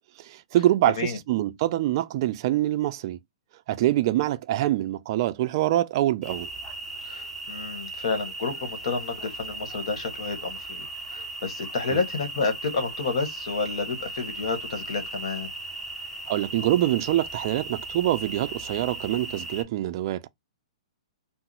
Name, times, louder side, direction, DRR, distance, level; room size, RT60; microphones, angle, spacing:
voice 1, 0.2-3.2 3.7-6.5 11.9-12.0 16.3-20.3, right 14 dB, 45° right, 0.3 m, -25 dB
voice 2, 0.9-1.2 7.0-15.5, left 4 dB, 60° left, 1.2 m, -30 dB
sound 1, 6.2-19.6, right 2 dB, ahead, 0.6 m, -37 dB
2.8 x 2.0 x 3.8 m
hypercardioid pair, 150°, 3 cm